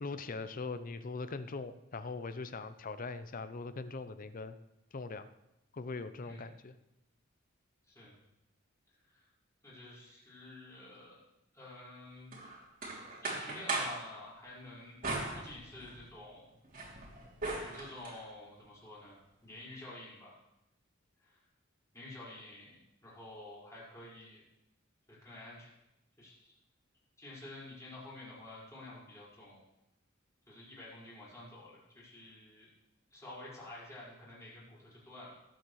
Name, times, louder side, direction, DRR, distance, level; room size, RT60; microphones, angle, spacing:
voice 1, 0.0-4.6 4.9-5.3 5.7-6.7, left 3 dB, 45° left, 12 dB, 0.6 m, -41 dB
voice 2, 7.9-8.2 9.0-9.3 9.6-11.2 11.5-12.3 13.2-15.0 15.2-16.5 17.5-20.4 21.2-21.4 21.9-22.7 23.0-24.4 25.1-25.7 26.2-26.5 27.2-29.6 30.5-32.7 33.1-35.4, left 2 dB, 15° left, -7 dB, 4.9 m, -50 dB
sound 1, 12.3-14.0 15.0-16.1 16.5-18.2, right 3 dB, 45° right, 3.1 m, -39 dB
19.5 x 8.4 x 3.2 m, 0.89 s
head